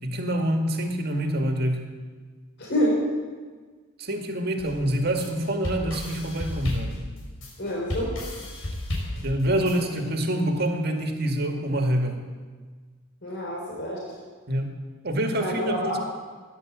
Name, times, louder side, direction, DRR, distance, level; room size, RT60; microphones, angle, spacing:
voice 1, 0.0-1.8 4.0-7.0 9.2-12.2 14.5-14.7 15.0-16.0, right 1 dB, 50° right, 4 dB, 2.0 m, -26 dB
voice 2, 2.6-3.0 7.6-8.1 13.2-14.0 15.4-15.9, equal, 55° left, -4 dB, 4.0 m, -27 dB
sound 1, 4.6-10.0, left 1 dB, 80° left, 5.0 m, -33 dB
16.5 x 11.0 x 7.5 m, 1.5 s
head